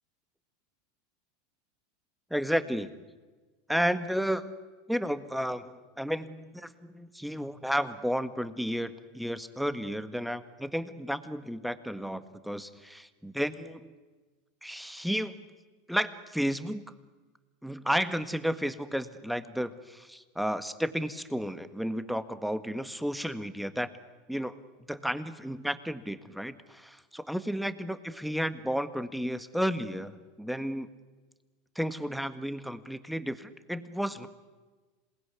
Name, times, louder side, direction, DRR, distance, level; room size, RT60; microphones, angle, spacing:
voice 1, 2.3-2.9 3.7-4.5 4.9-13.9 14.6-15.4 15.9-16.9 17.6-23.9 24.3-24.6 24.9-30.9 31.8-34.3, equal, ahead, 12 dB, 1.7 m, -32 dB
27.0 x 20.5 x 9.7 m, 1.3 s
hypercardioid pair, 105°, 0 cm